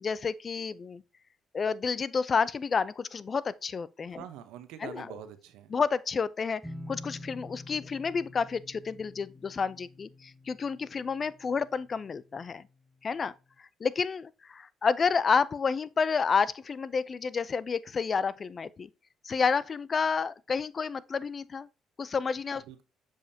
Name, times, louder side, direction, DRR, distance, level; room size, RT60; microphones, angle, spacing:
voice 1, 0.0-1.0 1.5-4.2 4.8-5.0 5.7-6.6 6.9-12.6 13.0-13.3 13.8-18.9 19.2-21.7 22.0-22.6, left 5 dB, 45° left, 0.4 m, -30 dB
voice 2, 4.1-5.7 22.5-22.8, right 10 dB, 85° right, 0.8 m, -45 dB
sound 1, 6.6-12.2, left 1 dB, ahead, 1.0 m, -47 dB
7.4 x 5.0 x 2.7 m
supercardioid pair, 70°, 0 cm